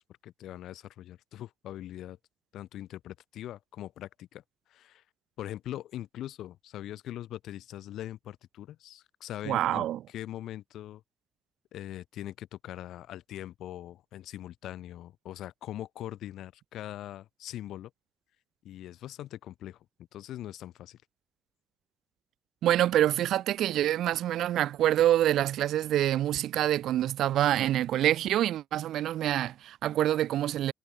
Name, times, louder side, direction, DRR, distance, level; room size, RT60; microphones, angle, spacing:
voice 1, 0.0-2.2 2.5-4.4 4.7-5.0 5.4-11.0 11.7-17.9 18.6-19.8 20.1-21.0, left 13 dB, 80° left, 1.9 m, -42 dB
voice 2, 9.5-10.0 22.6-30.7, right 12 dB, 75° right, 0.4 m, -26 dB
cardioid pair, 155°, 0 cm